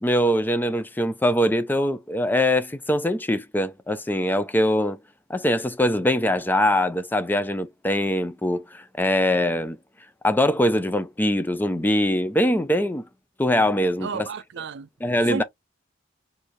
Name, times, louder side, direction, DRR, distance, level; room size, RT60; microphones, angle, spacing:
voice 1, 0.0-5.0 5.3-9.8 10.2-13.0 13.4-14.3 15.0-15.4, left 1 dB, 10° left, 0.4 m, -22 dB
voice 2, 14.0-14.9 15.2-15.4, right 5 dB, 60° right, 0.4 m, -32 dB
4.4 x 2.7 x 3.0 m
head